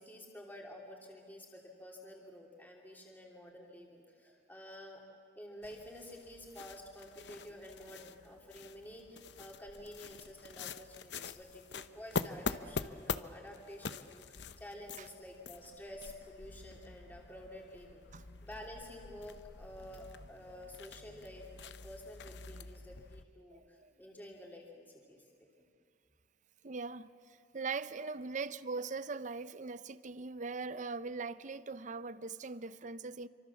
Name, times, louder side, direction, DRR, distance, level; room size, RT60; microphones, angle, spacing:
voice 1, 0.0-5.0 5.3-18.0 18.3-25.2, left 1 dB, 10° left, 3.1 m, -50 dB
sound 1, 5.6-23.2, left 5 dB, 75° left, 0.8 m, -45 dB
voice 2, 23.5-23.9 26.6-33.3, right 4 dB, 45° right, 0.7 m, -41 dB
27.5 x 25.0 x 7.1 m
head